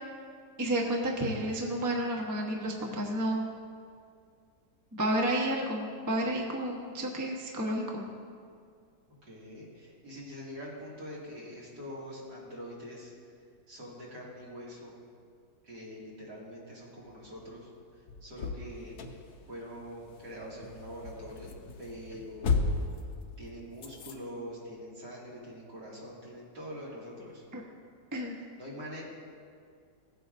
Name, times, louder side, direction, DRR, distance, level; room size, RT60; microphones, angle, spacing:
voice 1, 0.6-3.4 5.0-8.0 27.5-27.6 28.1-28.3, right 1 dB, 15° right, -1 dB, 0.6 m, -31 dB
voice 2, 9.2-13.1 13.7-14.9 15.6-17.7 18.2-19.0 19.5-21.5 21.8-22.7 23.4-27.4 28.6-29.0, equal, 70° right, -6 dB, 2.9 m, -44 dB
sound 1, 17.1-24.1, left 4 dB, 65° left, 1.1 m, -36 dB
16.5 x 8.6 x 2.6 m, 2.2 s
omnidirectional pair, 1.9 m